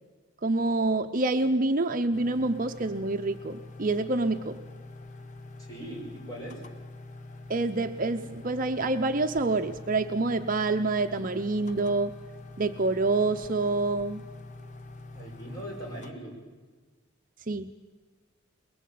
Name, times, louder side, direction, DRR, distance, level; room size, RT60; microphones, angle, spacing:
voice 1, 0.4-4.6 7.5-12.1 12.6-14.2 17.5-17.7, right 2 dB, 40° right, 7 dB, 0.7 m, -27 dB
sound 1, 2.1-16.1, left 2 dB, 40° left, 1.2 m, -45 dB
voice 2, 5.6-6.6 15.1-16.3, right 1 dB, 20° left, -1 dB, 6.1 m, -40 dB
22.0 x 21.5 x 8.5 m, 1.4 s
head